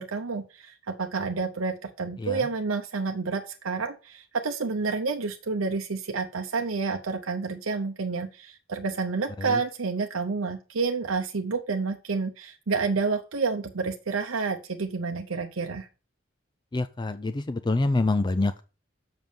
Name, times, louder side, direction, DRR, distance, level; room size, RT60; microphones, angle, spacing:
voice 1, 0.0-15.9, right 4 dB, 80° right, 4 dB, 0.8 m, -29 dB
voice 2, 16.7-18.6, left 2 dB, 20° left, 12 dB, 0.4 m, -26 dB
7.4 x 6.1 x 5.2 m, 0.34 s
head